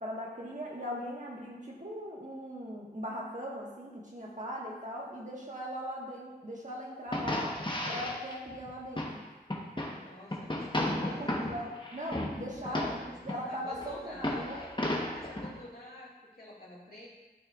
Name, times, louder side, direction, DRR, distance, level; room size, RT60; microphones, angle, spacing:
voice 1, 0.0-7.5 7.9-9.2 10.6-14.6, equal, 50° right, -3 dB, 1.5 m, -39 dB
sound 1, 7.1-9.2 9.5-10.0 10.3-13.4 13.7-15.6, left 1 dB, 30° left, 1.1 m, -34 dB
voice 2, 9.9-11.7 12.6-14.7 15.1-17.1, left 1 dB, 65° left, -6 dB, 2.1 m, -49 dB
12.0 x 4.3 x 2.4 m, 1.2 s
wide cardioid pair, 45°, 17 cm